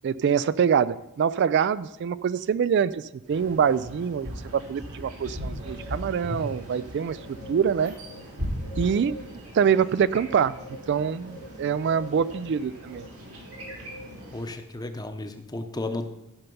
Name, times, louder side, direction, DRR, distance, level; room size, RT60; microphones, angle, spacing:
voice 1, 0.0-7.9 8.8-9.2 9.5-10.6 10.9-13.0, right 7 dB, 55° right, 16 dB, 0.3 m, -25 dB
sound 1, 3.3-14.5, equal, 85° right, 3.5 m, -38 dB
voice 2, 14.3-16.1, left 2 dB, 20° left, 7 dB, 0.8 m, -33 dB
14.0 x 5.8 x 5.4 m, 0.88 s
head